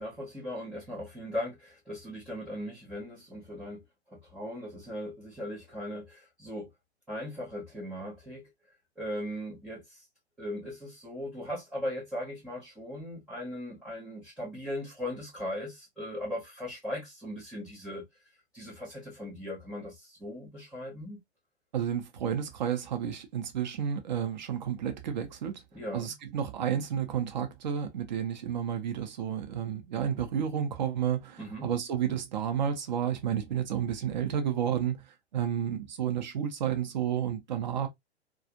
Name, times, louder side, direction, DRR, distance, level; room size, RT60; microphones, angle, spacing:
voice 1, 0.0-3.8 4.1-6.7 7.1-8.5 9.0-10.0 10.4-18.0 18.5-21.2 25.7-26.1 31.4-31.7, left 1 dB, ahead, 0.3 m, -38 dB
voice 2, 21.7-25.6 25.9-35.0 35.3-37.9, right 9 dB, 45° right, 0.7 m, -31 dB
2.4 x 2.4 x 2.6 m
figure-of-eight pair, 115°, 33 cm